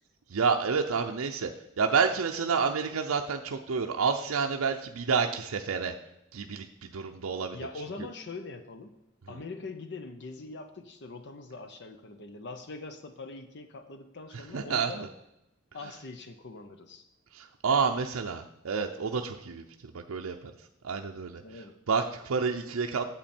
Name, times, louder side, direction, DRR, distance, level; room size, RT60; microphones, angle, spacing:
voice 1, 0.3-1.5 1.8-5.9 6.3-6.7 6.9-7.6 14.5-15.1 17.3-20.4 20.8-21.4 21.9-23.0, right 5 dB, 80° right, 4 dB, 0.6 m, -29 dB
voice 2, 7.5-8.9 9.3-15.1 15.7-17.1 21.4-21.8, left 3 dB, 55° left, 8 dB, 0.7 m, -43 dB
8.9 x 7.6 x 4.3 m, 0.85 s
head